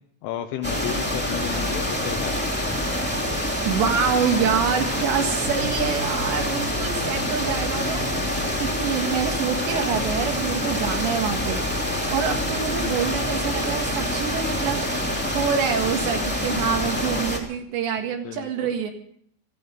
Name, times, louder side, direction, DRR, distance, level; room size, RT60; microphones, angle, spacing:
voice 1, 0.2-2.4 13.1-13.5 16.6-17.2 18.2-18.7, left 11 dB, 80° left, 6 dB, 3.3 m, -34 dB
sound 1, 0.6-17.4, equal, 5° left, 1.6 m, -26 dB
voice 2, 3.7-8.3 8.6-11.6 12.1-14.9 15.2-18.9, right 7 dB, 65° right, 4 dB, 3.8 m, -26 dB
sound 2, 5.4-17.5, left 2 dB, 50° left, 2.7 m, -42 dB
17.5 x 14.5 x 5.2 m, 0.64 s
omnidirectional pair, 5.7 m